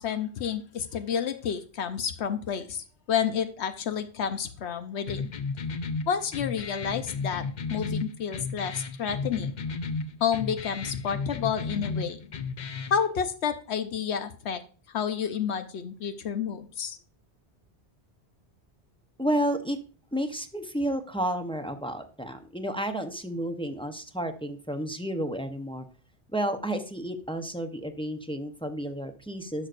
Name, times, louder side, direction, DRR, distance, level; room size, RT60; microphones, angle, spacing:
voice 1, 0.0-5.3 6.1-9.5 10.2-12.3 12.9-17.0, left 7 dB, 80° left, 9 dB, 1.0 m, -30 dB
sound 1, 5.1-13.0, left 4 dB, 50° left, 0.7 m, -34 dB
voice 2, 19.2-19.8 20.1-25.9 26.3-29.7, right 1 dB, 5° left, 6 dB, 0.6 m, -31 dB
11.0 x 6.5 x 2.5 m, 0.38 s
omnidirectional pair, 1.1 m